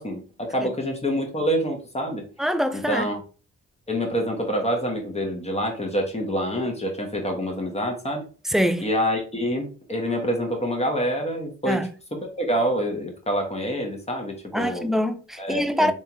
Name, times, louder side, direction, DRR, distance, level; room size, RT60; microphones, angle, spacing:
voice 1, 0.0-2.2 2.7-3.2 3.9-8.2 8.8-11.8 12.4-14.9 15.4-15.9, equal, 20° left, 1.5 m, -26 dB
voice 2, 2.4-3.1 8.4-8.9 11.7-11.9 14.5-15.9, equal, ahead, 0.4 m, -24 dB
3.5 x 3.4 x 2.9 m
cardioid pair, 90°, 30 cm